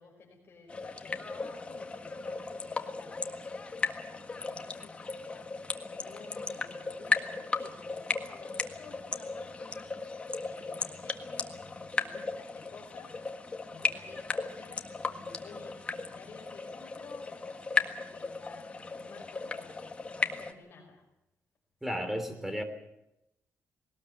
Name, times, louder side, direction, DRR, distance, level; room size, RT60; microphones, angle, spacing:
voice 1, 0.0-3.4 4.3-5.0 5.8-9.9 10.4-13.2 13.7-19.9 20.4-21.1 21.9-22.1, left 4 dB, 45° left, -1 dB, 5.2 m, -53 dB
sound 1, 0.7-20.5, left 3 dB, 25° left, 1.6 m, -36 dB
voice 2, 21.8-22.6, equal, 5° right, 8 dB, 3.3 m, -33 dB
20.5 x 19.0 x 8.1 m, 0.87 s
wide cardioid pair, 150°, 5 cm